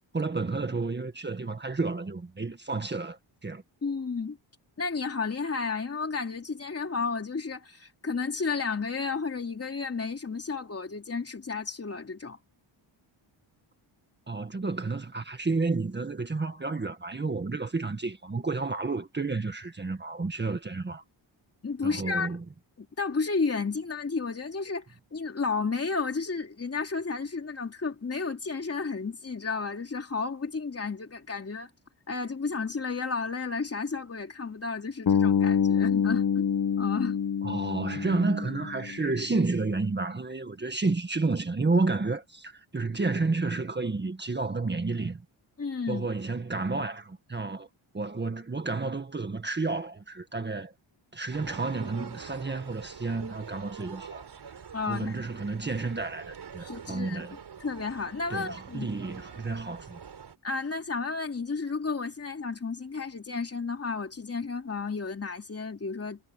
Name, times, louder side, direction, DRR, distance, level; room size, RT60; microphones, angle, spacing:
voice 1, 0.1-3.6 14.3-21.0 21.8-22.4 37.4-45.2 45.9-47.7 47.9-50.7 51.1-54.3 54.9-57.4 58.3-60.0, right 3 dB, 20° right, 1.8 m, -31 dB
voice 2, 3.8-4.4 4.8-12.4 21.6-22.4 22.8-24.8 25.1-31.7 32.1-36.4 36.8-37.2 45.6-46.1 54.7-55.2 56.6-58.9 60.4-66.2, left 4 dB, 30° left, 3.2 m, -32 dB
Bass guitar, 35.1-39.2, left 7 dB, 50° left, 1.4 m, -26 dB
sound 1, 51.3-60.4, right 7 dB, 55° right, 4.8 m, -45 dB
wide cardioid pair, 140°, 47 cm